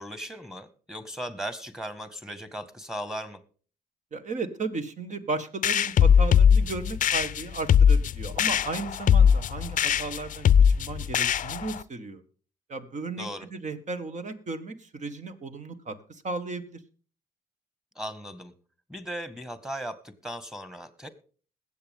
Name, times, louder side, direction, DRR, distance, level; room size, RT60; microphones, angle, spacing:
voice 1, 0.0-3.4 13.2-13.5 18.0-18.5 18.9-21.1, equal, 5° right, 12 dB, 1.8 m, -37 dB
voice 2, 4.1-10.5 10.8-12.2 12.7-16.0 16.2-16.8, right 3 dB, 50° right, 9 dB, 1.7 m, -35 dB
sound 1, 5.6-11.8, left 8 dB, 55° left, 0.5 m, -21 dB
21.0 x 8.0 x 3.7 m, 0.40 s
supercardioid pair, 55°, 16 cm